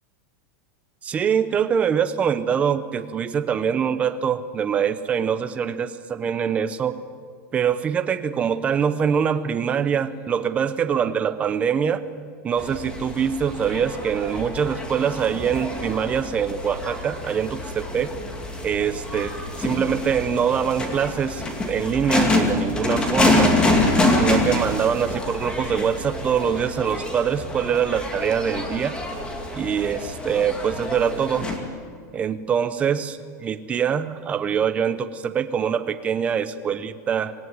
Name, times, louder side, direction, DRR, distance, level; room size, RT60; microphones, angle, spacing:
voice 1, 1.0-7.0 7.5-12.0 12.4-18.1 18.6-23.6 24.1-28.9 29.5-31.5 32.1-37.3, right 7 dB, 15° right, 10 dB, 0.8 m, -24 dB
sound 1, 12.6-31.6, left 2 dB, 10° left, 2.3 m, -26 dB
26.0 x 17.5 x 9.6 m, 2.1 s
supercardioid pair, 175°, 9 cm